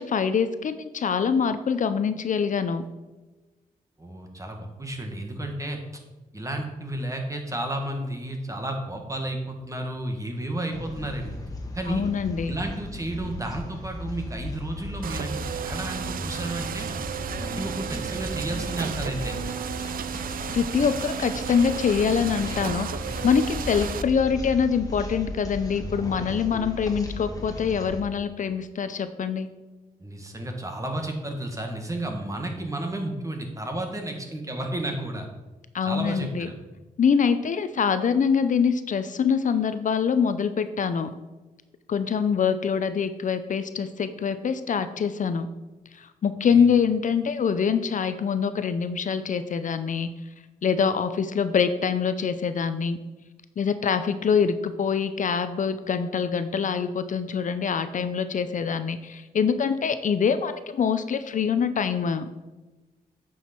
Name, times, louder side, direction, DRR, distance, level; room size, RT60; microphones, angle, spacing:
voice 1, 0.0-2.9 11.9-12.5 20.5-29.5 35.7-36.5 37.0-41.1 41.9-45.5 45.9-50.1 50.6-53.0 53.6-62.3, left 6 dB, 55° left, 11 dB, 0.6 m, -24 dB
voice 2, 4.0-6.0 6.3-11.4 11.7-12.0 12.5-17.0 17.4-19.4 30.0-35.3 35.8-36.5 46.5-46.6, right 1 dB, 20° right, 3 dB, 1.7 m, -32 dB
sound 1, 10.7-28.0, left 1 dB, 25° left, 1.9 m, -36 dB
sound 2, 15.0-24.0, right 8 dB, 70° right, 0.5 m, -33 dB
9.0 x 6.3 x 4.5 m, 1.2 s
cardioid pair, 75°, 15 cm